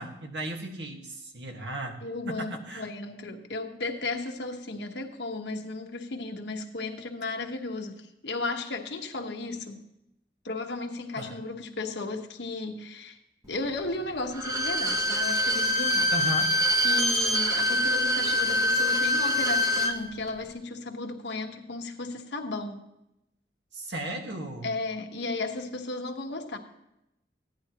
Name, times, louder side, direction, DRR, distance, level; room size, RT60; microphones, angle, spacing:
voice 1, 0.0-2.0 2.3-2.9 11.2-11.4 16.1-16.6 23.7-24.7, right 1 dB, 85° right, 3 dB, 1.6 m, -35 dB
voice 2, 2.0-9.8 10.4-13.2 13.4-16.1 16.8-22.8 24.6-26.6, left 3 dB, 80° left, 3 dB, 1.2 m, -34 dB
Bowed string instrument, 14.3-20.0 20.3-20.4, left 1 dB, 20° right, 0.7 m, -25 dB
16.0 x 10.5 x 2.9 m, 0.85 s
head